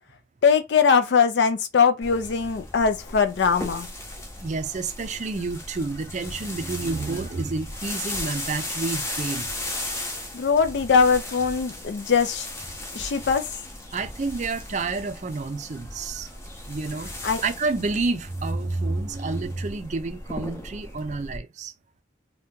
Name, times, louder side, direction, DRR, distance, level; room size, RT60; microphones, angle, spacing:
voice 1, 0.4-3.9 10.3-12.5 12.9-13.4 17.2-17.4, left 6 dB, 60° left, 0.4 m, -21 dB
sound 1, 2.0-21.4, left 1 dB, 15° left, 0.6 m, -36 dB
voice 2, 4.4-9.5 13.9-16.3 16.7-21.7, right 3 dB, 40° right, 0.4 m, -29 dB
2.8 x 2.2 x 3.5 m
head